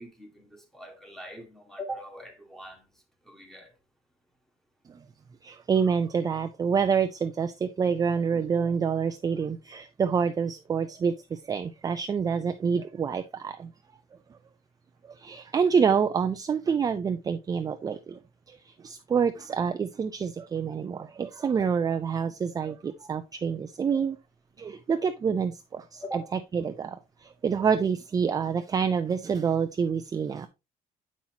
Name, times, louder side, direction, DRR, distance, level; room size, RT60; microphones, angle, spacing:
voice 1, 0.0-3.7 26.0-26.3, right 1 dB, ahead, 1.5 m, -41 dB
voice 2, 5.4-13.7 15.1-18.2 18.5-24.2 24.6-26.2 26.5-30.5, right 6 dB, 25° right, 0.4 m, -27 dB
7.3 x 5.6 x 2.8 m
cardioid pair, 125°, 15 cm